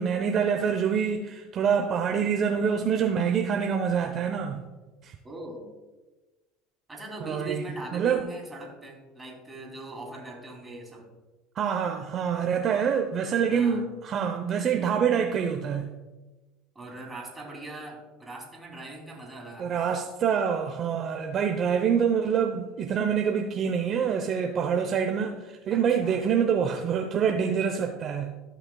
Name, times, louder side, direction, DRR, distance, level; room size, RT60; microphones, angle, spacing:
voice 1, 0.0-4.6 5.0-5.2 7.2-7.6 7.9-8.3 11.6-15.9 19.6-28.3, right 7 dB, 45° right, 4 dB, 0.7 m, -26 dB
voice 2, 5.2-5.7 6.9-11.1 13.5-13.9 16.7-19.9 25.7-26.2, right 2 dB, 15° right, 0 dB, 2.8 m, -40 dB
15.0 x 5.8 x 2.3 m, 1.2 s
supercardioid pair, 100°, 0 cm